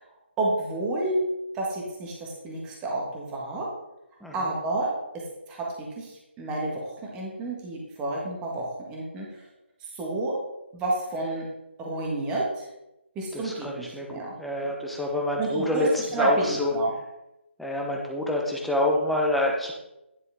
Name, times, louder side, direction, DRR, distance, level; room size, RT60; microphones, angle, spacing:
voice 1, 0.4-1.2 1.5-3.7 4.3-4.9 5.5-9.4 9.9-10.3 10.7-11.4 11.8-12.7 13.1-14.4 15.4-15.9 16.1-16.9, right 2 dB, 15° right, -3 dB, 1.7 m, -30 dB
voice 2, 4.2-4.5 13.3-16.7 17.6-19.7, left 1 dB, ahead, -2 dB, 0.9 m, -27 dB
10.5 x 6.7 x 3.6 m, 0.92 s
figure-of-eight pair, 150°, 7 cm